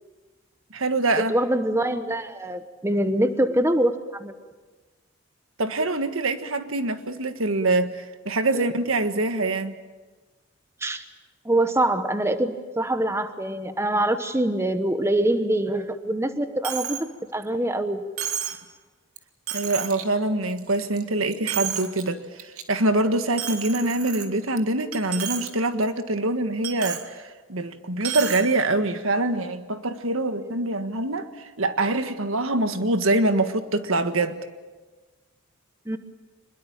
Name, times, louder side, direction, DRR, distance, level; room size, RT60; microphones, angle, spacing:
voice 1, 0.7-1.3 5.6-9.8 19.5-22.2 22.7-34.4, right 2 dB, 70° right, 9 dB, 1.6 m, -24 dB
voice 2, 1.3-4.3 8.5-8.6 10.8-11.0 11.4-18.0 35.9-36.0, right 1 dB, 10° right, 9 dB, 1.0 m, -24 dB
Coin (dropping), 16.6-17.1 17.4-17.5 18.2-18.6 19.2-19.3 19.5-20.0 20.5-21.0 21.3-22.0 22.4-22.6 23.4-24.6 24.9-25.5 25.8-25.9 26.6-27.1 28.0-28.5, right 9 dB, 90° right, 2.5 m, -31 dB
25.0 x 21.5 x 8.9 m, 1.3 s
head